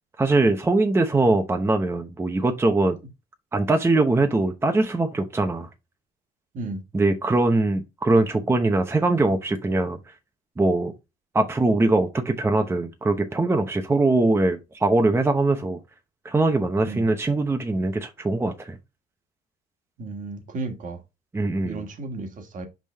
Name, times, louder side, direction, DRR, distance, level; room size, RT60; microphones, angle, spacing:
voice 1, 0.2-3.0 3.5-5.7 6.9-10.0 10.6-10.9 11.3-15.8 16.2-18.8 21.3-21.8, right 2 dB, 15° right, 0.8 m, -22 dB
voice 2, 20.0-21.0 21.6-22.7, right 3 dB, 50° right, 1.6 m, -33 dB
5.5 x 5.1 x 3.3 m
cardioid pair, 110°, 17 cm